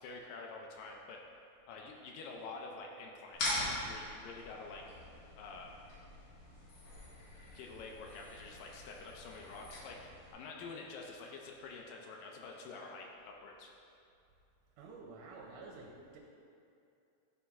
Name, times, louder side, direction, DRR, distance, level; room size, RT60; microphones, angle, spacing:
voice 1, 0.0-1.2 1.7-4.8 5.4-5.8 7.5-13.7, left 3 dB, 80° left, 0 dB, 2.0 m, -48 dB
sound 1, 3.3-10.3, left 1 dB, 60° left, 3.1 m, -43 dB
voice 2, 14.8-16.2, right 3 dB, 75° right, -1 dB, 2.0 m, -50 dB
10.5 x 4.1 x 3.5 m, 2.6 s
omnidirectional pair, 4.4 m